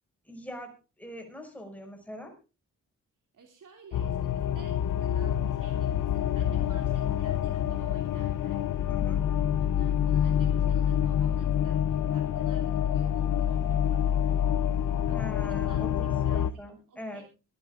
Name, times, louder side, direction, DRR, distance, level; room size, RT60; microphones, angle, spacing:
voice 1, 0.3-0.7 1.0-2.3 8.9-9.3 15.1-17.2, left 1 dB, 5° left, 3 dB, 5.5 m, -42 dB
voice 2, 3.3-8.6 9.6-16.6 16.9-17.2, right 5 dB, 80° right, 2 dB, 2.9 m, -54 dB
sound 1, 3.9-16.5, left 10 dB, 90° left, 0.7 m, -27 dB
24.5 x 12.0 x 2.5 m, 0.32 s
wide cardioid pair, 110°, 31 cm